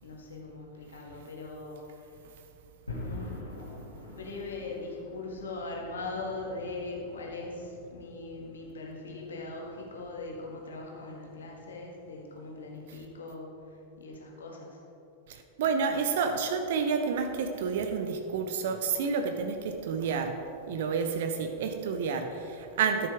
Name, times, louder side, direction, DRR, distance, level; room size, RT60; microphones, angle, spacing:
voice 1, 0.0-2.2 3.0-3.3 4.2-14.8, left 3 dB, 65° left, -1 dB, 1.7 m, -40 dB
sound 1, 2.9-13.1, left 2 dB, 85° left, 2.2 m, -47 dB
voice 2, 15.3-20.4 20.7-23.1, right 5 dB, 55° right, 6 dB, 0.6 m, -29 dB
13.0 x 7.0 x 3.5 m, 2.9 s
figure-of-eight pair, 90°, 0 cm